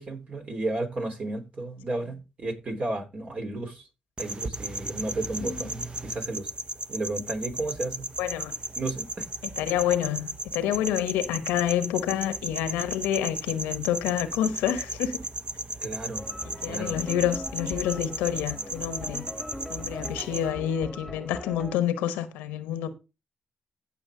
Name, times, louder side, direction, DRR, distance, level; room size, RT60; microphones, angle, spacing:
voice 1, 0.0-3.9 4.2-6.5 6.9-8.1 8.8-9.3 15.8-16.2 16.7-17.0, right 2 dB, 50° right, 3.7 m, -33 dB
sound 1, 4.2-20.5, right 1 dB, 35° right, 1.1 m, -36 dB
voice 2, 8.2-8.5 9.4-15.2 16.6-19.2 19.7-22.9, left 10 dB, 90° left, 1.0 m, -28 dB
sound 2, 16.2-21.8, left 1 dB, ahead, 1.6 m, -40 dB
15.5 x 5.9 x 3.8 m
supercardioid pair, 50°, 3 cm